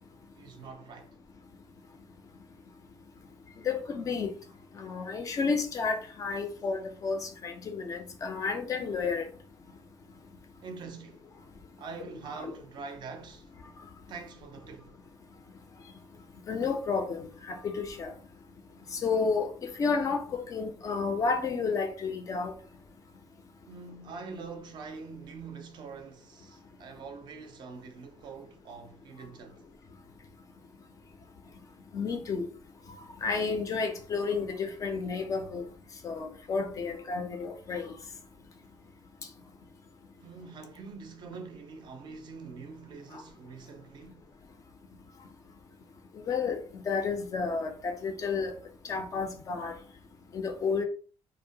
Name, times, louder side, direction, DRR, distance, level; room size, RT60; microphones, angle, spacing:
voice 1, 0.4-1.1 10.6-11.3 11.8-13.5 14.1-15.0 23.7-29.6 40.2-44.2, right 4 dB, 45° right, 0.4 m, -44 dB
voice 2, 3.6-4.3 4.8-9.3 12.4-12.5 16.5-18.1 18.9-22.5 31.9-32.5 33.2-35.7 36.0-37.9 46.3-46.6 46.9-48.5 48.9-49.7 50.3-50.8, left 5 dB, 30° left, 0.3 m, -31 dB
2.6 x 2.1 x 2.7 m
cardioid pair, 170°, 11 cm